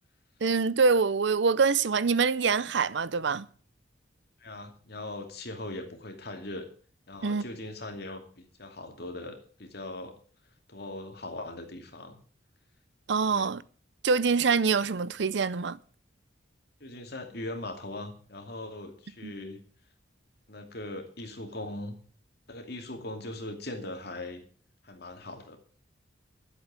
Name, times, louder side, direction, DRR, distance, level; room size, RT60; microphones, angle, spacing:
voice 1, 0.4-3.5 7.2-7.4 13.1-13.6 14.0-15.8 19.2-19.3, right 5 dB, 65° right, 0.6 m, -25 dB
voice 2, 4.4-6.7 7.1-10.2 10.7-12.2 13.3-13.5 16.8-19.6 20.5-22.0 22.5-24.4 24.8-25.6, left 2 dB, 55° left, 2.5 m, -40 dB
11.5 x 8.2 x 7.5 m
head